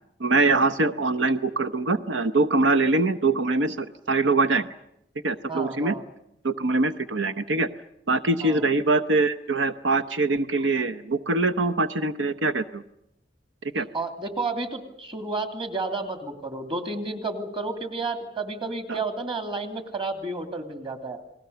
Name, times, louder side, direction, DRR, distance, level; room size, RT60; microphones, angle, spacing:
voice 1, 0.2-4.7 5.2-6.0 6.4-7.7 8.1-12.8 13.7-13.9 18.9-19.0, right 3 dB, 85° right, 10 dB, 0.9 m, -23 dB
voice 2, 5.5-6.0 8.4-8.6 13.9-21.2, right 3 dB, 30° right, 7 dB, 2.7 m, -31 dB
30.0 x 20.5 x 6.9 m, 0.83 s
head